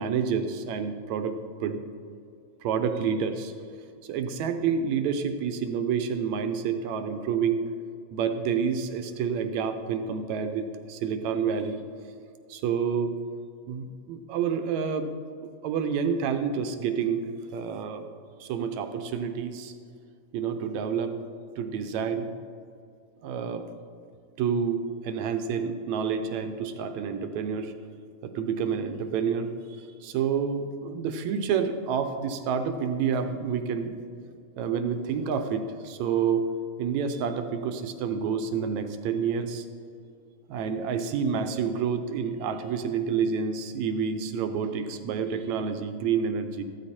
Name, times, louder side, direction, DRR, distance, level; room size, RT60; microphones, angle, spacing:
voice 1, 0.0-1.8 2.6-3.5 4.0-7.7 8.1-11.8 12.5-13.2 13.7-15.1 15.6-18.0 18.4-19.7 20.3-21.2 21.6-22.3 23.2-23.7 24.4-27.7 28.2-29.5 30.0-33.9 34.6-36.5 36.8-39.7 40.5-46.6, right 6 dB, 75° right, 7 dB, 2.1 m, -28 dB
14.5 x 13.5 x 4.3 m, 2.4 s
omnidirectional pair, 3.4 m